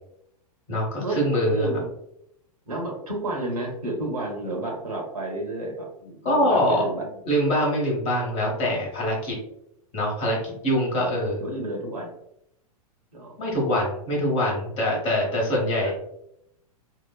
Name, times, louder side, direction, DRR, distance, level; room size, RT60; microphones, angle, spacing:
voice 1, 0.7-1.7 6.2-6.9 7.3-9.4 9.9-11.4 13.4-15.9, equal, 30° left, -2 dB, 1.0 m, -24 dB
voice 2, 1.5-1.9 2.7-7.1 11.4-12.2 13.1-13.4 14.1-14.3 15.5-15.9, right 1 dB, 75° right, -1 dB, 0.9 m, -31 dB
2.9 x 2.0 x 2.3 m, 0.77 s
figure-of-eight pair, 100°, 20 cm